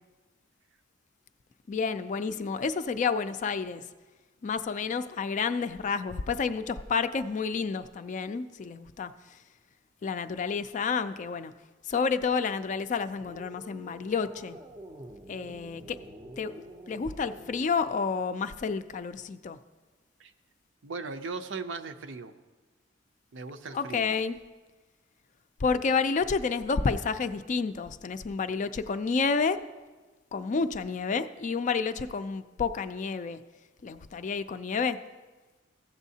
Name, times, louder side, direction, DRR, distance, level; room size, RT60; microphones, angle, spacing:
voice 1, 1.7-3.8 4.4-9.4 10.0-11.5 11.9-14.6 15.3-16.0 16.4-16.5 16.9-19.6 23.7-24.4 25.6-29.6 30.3-33.4 33.8-35.0, left 5 dB, 40° left, 11 dB, 0.3 m, -30 dB
sound 1, 13.2-18.0, equal, 20° right, 0.5 m, -48 dB
voice 2, 20.8-22.3 23.3-24.1, right 4 dB, 75° right, 8 dB, 0.6 m, -38 dB
15.0 x 7.1 x 2.8 m, 1.3 s
head